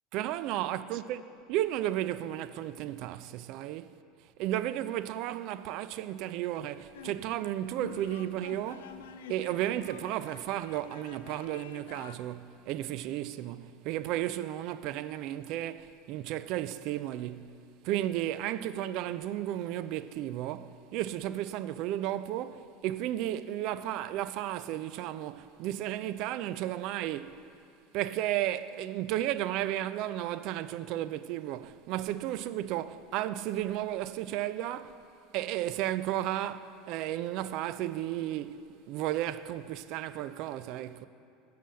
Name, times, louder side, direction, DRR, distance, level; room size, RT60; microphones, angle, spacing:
voice 1, 0.1-1.2 1.5-3.9 4.4-8.9 9.3-17.6 17.8-27.4 27.9-35.0 35.3-41.1, right 13 dB, 60° right, 0.3 m, -33 dB
sound 1, 6.9-12.2, left 8 dB, 90° left, 0.4 m, -48 dB
7.3 x 5.5 x 7.4 m
supercardioid pair, 105°, 0 cm